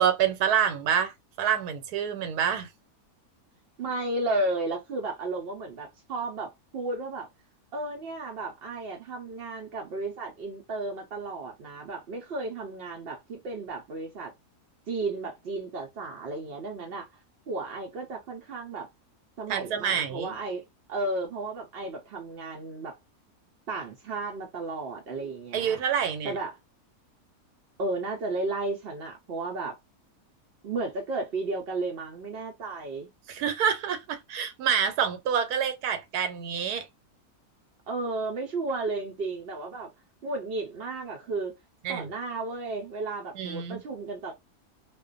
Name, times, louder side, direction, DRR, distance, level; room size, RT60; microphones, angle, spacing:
voice 1, 0.0-2.7 19.5-20.4 25.5-26.3 33.3-36.9 41.8-42.1 43.3-43.8, right 8 dB, 90° right, 1.1 m, -27 dB
voice 2, 3.8-7.3 7.7-14.3 14.9-17.1 17.5-18.9 19.4-20.6 20.9-23.0 23.7-25.8 26.2-26.5 27.8-29.8 30.6-33.1 37.9-39.9 40.2-41.5 41.9-44.3, right 2 dB, 60° right, 0.6 m, -33 dB
2.4 x 2.2 x 2.4 m
omnidirectional pair, 1.6 m